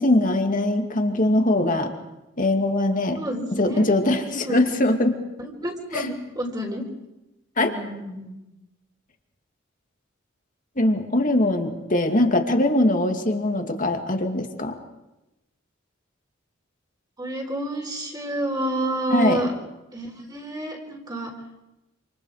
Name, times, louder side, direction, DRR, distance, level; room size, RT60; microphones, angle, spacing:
voice 1, 0.0-1.9 2.4-3.2 3.6-5.1 5.9-6.0 7.6-7.7 10.8-14.8 19.1-19.4, left 1 dB, 40° left, 4 dB, 2.4 m, -21 dB
voice 2, 3.2-3.8 4.4-4.6 5.4-6.8 7.6-8.3 17.2-19.5 19.9-21.3, right 1 dB, 20° right, 2 dB, 4.3 m, -29 dB
28.0 x 27.5 x 5.0 m, 0.96 s
head